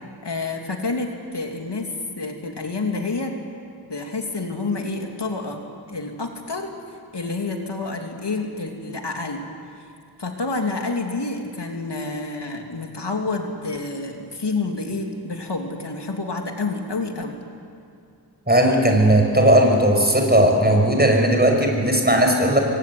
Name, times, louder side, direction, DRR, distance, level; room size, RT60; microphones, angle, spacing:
voice 1, 0.2-1.9 2.2-3.3 3.9-6.7 7.1-9.4 10.2-17.4, left 3 dB, 75° left, 2 dB, 3.0 m, -28 dB
voice 2, 18.5-22.6, right 1 dB, 25° right, 2 dB, 6.1 m, -17 dB
26.0 x 23.5 x 9.7 m, 2.5 s
wide cardioid pair, 70°, 41 cm